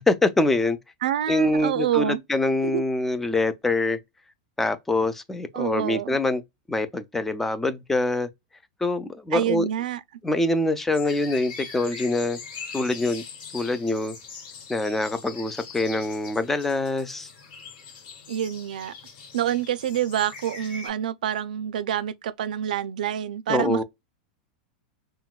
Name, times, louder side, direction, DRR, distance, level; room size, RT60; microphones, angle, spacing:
voice 1, 0.1-0.8 1.3-4.0 4.6-6.4 6.7-8.3 8.8-9.7 10.2-12.4 12.7-13.2 13.5-14.2 14.7-17.3 23.5-23.8, left 2 dB, 5° left, 0.3 m, -24 dB
voice 2, 1.0-2.2 2.6-2.8 5.5-6.2 9.3-10.0 18.3-18.9 19.3-23.8, right 10 dB, 90° right, 0.4 m, -27 dB
sound 1, 10.9-20.9, left 5 dB, 50° left, 1.9 m, -42 dB
3.7 x 2.1 x 2.3 m
supercardioid pair, 160°, 4 cm